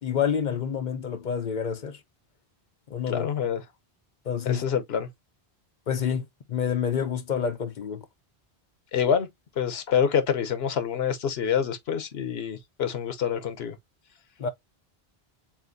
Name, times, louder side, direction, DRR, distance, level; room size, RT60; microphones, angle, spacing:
voice 1, 0.0-2.0 2.9-3.3 4.3-4.6 5.9-8.0 14.4-14.5, left 7 dB, 55° left, 0.7 m, -28 dB
voice 2, 3.1-3.6 4.5-5.1 8.9-9.3 9.6-13.8, left 7 dB, 80° left, 1.0 m, -26 dB
7.1 x 2.5 x 2.5 m
omnidirectional pair, 1.0 m